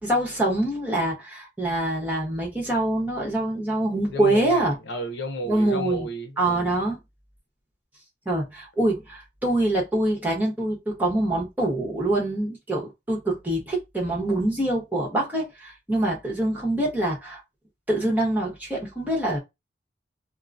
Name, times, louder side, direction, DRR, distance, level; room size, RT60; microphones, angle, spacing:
voice 1, 0.0-4.8 5.5-6.1 6.4-7.0 8.2-17.4 17.9-19.4, right 1 dB, 10° right, 1.1 m, -25 dB
voice 2, 4.1-6.7, equal, 70° left, 0.7 m, -33 dB
3.7 x 2.1 x 2.6 m
head